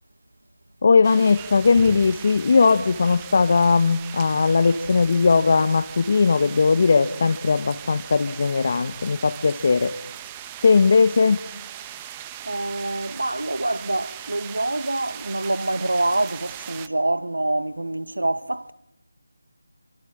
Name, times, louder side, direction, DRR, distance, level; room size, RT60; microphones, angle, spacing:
voice 1, 0.8-9.9 10.6-11.4, left 4 dB, 40° left, 1.0 m, -18 dB
sound 1, 1.0-16.9, right 11 dB, 15° right, 1.0 m, -39 dB
voice 2, 12.4-18.7, right 2 dB, 90° right, 1.2 m, -26 dB
26.5 x 26.0 x 8.7 m
figure-of-eight pair, 170°, 0 cm